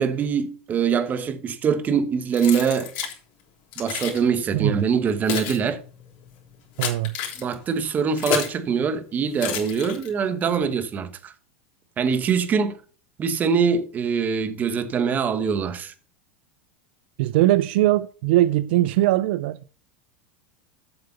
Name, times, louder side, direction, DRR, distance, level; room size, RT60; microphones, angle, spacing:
voice 1, 0.0-2.9 3.8-5.8 7.4-11.3 12.0-12.8 13.2-15.9, right 6 dB, 25° right, 1.2 m, -23 dB
Keys jangling, 2.3-3.2 3.7-4.2 4.9-8.6 9.4-10.3, left 8 dB, 60° left, 3.4 m, -30 dB
voice 2, 4.5-4.8 6.8-7.1 17.2-19.6, right 15 dB, 70° right, 0.4 m, -20 dB
8.0 x 6.7 x 5.5 m
supercardioid pair, 130°, 6 cm